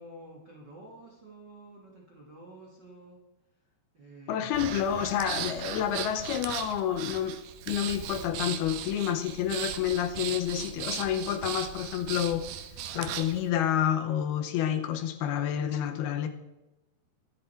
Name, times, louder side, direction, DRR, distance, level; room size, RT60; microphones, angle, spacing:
voice 1, 0.0-3.2 3.6-4.6, right 1 dB, 40° right, -2 dB, 1.6 m, -50 dB
voice 2, 4.3-7.4 7.7-12.5 12.9-16.3, left 10 dB, 75° left, 7 dB, 2.5 m, -29 dB
Breathing, 4.5-13.4, right 9 dB, 85° right, 3.1 m, -37 dB
23.5 x 8.1 x 4.4 m, 0.99 s
omnidirectional pair, 4.8 m